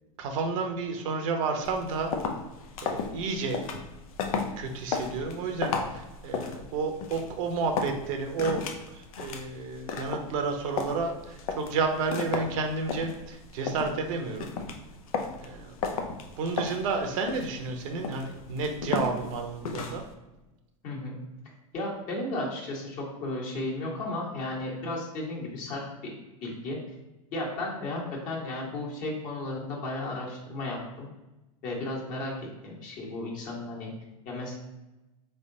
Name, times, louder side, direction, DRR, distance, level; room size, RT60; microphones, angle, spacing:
voice 1, 0.2-2.1 2.8-3.6 4.6-8.6 8.9-14.5 15.4-15.7 16.4-20.0, right 4 dB, 65° right, 4 dB, 0.7 m, -31 dB
sound 1, 1.6-20.1, left 5 dB, 85° left, 0.5 m, -35 dB
voice 2, 21.7-26.1 26.4-26.8 27.3-31.1 31.6-32.3 32.6-33.9 34.2-34.5, left 2 dB, 45° left, -3 dB, 1.4 m, -34 dB
3.8 x 3.3 x 2.7 m, 1.0 s
hypercardioid pair, 110°, 18 cm